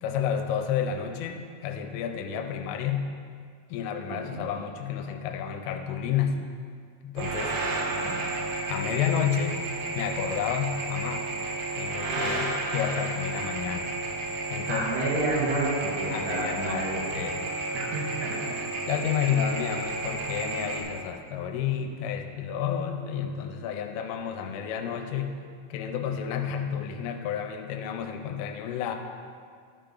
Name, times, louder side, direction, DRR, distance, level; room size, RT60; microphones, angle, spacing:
voice 1, 0.0-3.1 3.7-6.4 7.0-7.6 8.7-9.7 9.9-11.3 11.8-14.0 14.5-15.0 16.1-16.9 17.1-17.5 18.9-25.4 25.7-29.0, left 8 dB, 85° left, 5 dB, 3.2 m, -30 dB
voice 2, 4.1-4.4 7.7-8.1 14.7-17.1 17.7-18.4, right 2 dB, 70° right, -5 dB, 3.0 m, -30 dB
sound 1, 7.2-20.8, right 2 dB, 85° right, 3.8 m, -32 dB
12.5 x 5.7 x 3.8 m, 2.1 s
omnidirectional pair, 5.7 m